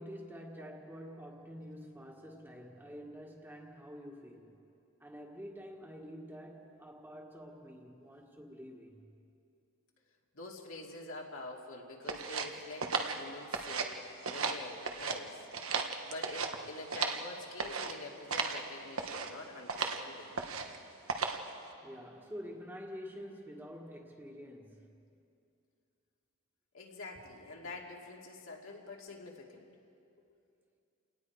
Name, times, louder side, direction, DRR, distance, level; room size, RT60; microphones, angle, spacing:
voice 1, 0.0-4.6 5.0-9.1 21.8-24.9, equal, 10° right, 0 dB, 1.8 m, -48 dB
voice 2, 10.3-15.4 16.0-20.4 26.7-29.7, left 2 dB, 70° left, -1 dB, 2.6 m, -46 dB
sound 1, 12.1-14.0 14.2-15.2 15.5-17.3 17.6-17.9 18.3-18.6 18.9-19.3 19.7-20.0 20.3-20.8 21.1-21.5, right 5 dB, 75° right, 1.4 m, -35 dB
29.5 x 18.5 x 4.8 m, 2.5 s
head